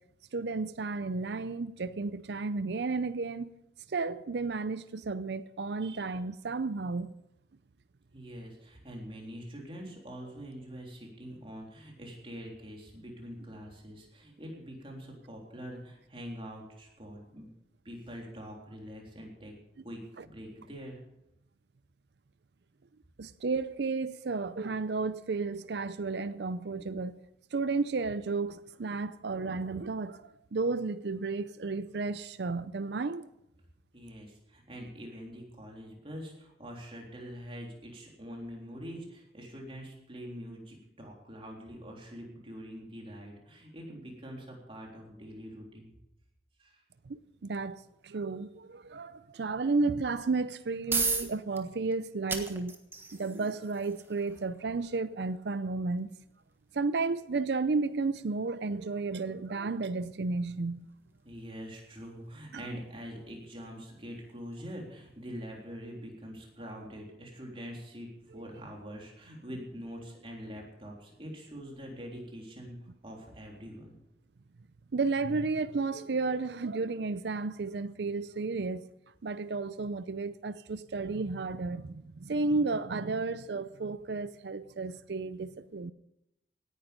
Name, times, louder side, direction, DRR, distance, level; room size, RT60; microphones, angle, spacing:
voice 1, 0.3-3.5 3.9-7.1 20.2-20.3 23.2-27.2 27.5-33.3 47.1-52.8 53.1-56.1 56.7-60.9 74.9-78.9 79.2-85.9, right 3 dB, 65° right, 0.5 m, -33 dB
voice 2, 8.1-17.5 17.8-19.5 19.8-21.0 33.9-45.9 46.6-46.8 61.2-72.8 73.0-74.0, equal, 30° right, 3.6 m, -44 dB
sound 1, 50.4-65.3, right 4 dB, 15° right, 1.4 m, -41 dB
17.5 x 10.5 x 5.2 m
head